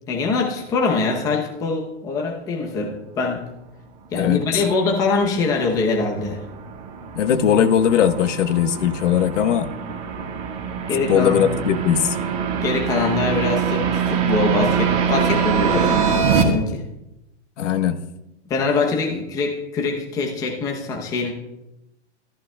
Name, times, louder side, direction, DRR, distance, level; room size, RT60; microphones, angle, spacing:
voice 1, 0.1-3.4 4.1-6.4 10.9-11.6 12.6-16.8 18.5-21.3, left 4 dB, 10° left, 0 dB, 0.7 m, -23 dB
voice 2, 4.2-4.6 7.2-9.7 11.1-12.2 17.6-18.0, left 9 dB, 90° left, 9 dB, 1.1 m, -19 dB
sound 1, 4.9-16.4, right 7 dB, 30° right, 1.5 m, -24 dB
14.0 x 13.5 x 2.2 m, 0.93 s
supercardioid pair, 170°, 35 cm